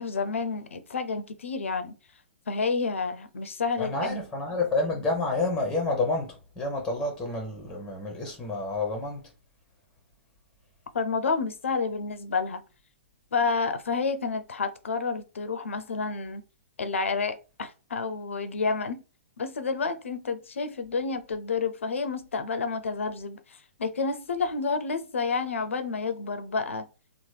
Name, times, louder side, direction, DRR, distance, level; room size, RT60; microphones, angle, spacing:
voice 1, 0.0-1.9 2.5-4.2 10.9-12.6 13.3-16.4 16.8-19.0 19.4-26.9, left 4 dB, 75° left, 0.5 m, -29 dB
voice 2, 3.8-9.3, left 3 dB, 10° left, 0.8 m, -29 dB
2.9 x 2.1 x 3.2 m
figure-of-eight pair, 120°, 7 cm